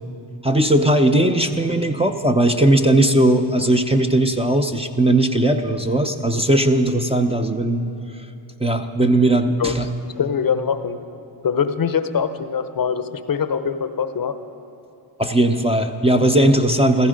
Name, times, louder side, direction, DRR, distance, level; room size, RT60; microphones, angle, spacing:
voice 1, 0.4-7.9 8.6-9.9 15.2-17.1, right 1 dB, 10° right, 5 dB, 0.7 m, -18 dB
voice 2, 10.2-11.0 11.4-14.3, left 7 dB, 45° left, 10 dB, 0.8 m, -23 dB
15.0 x 14.5 x 5.2 m, 2.7 s
cardioid pair, 70°, 49 cm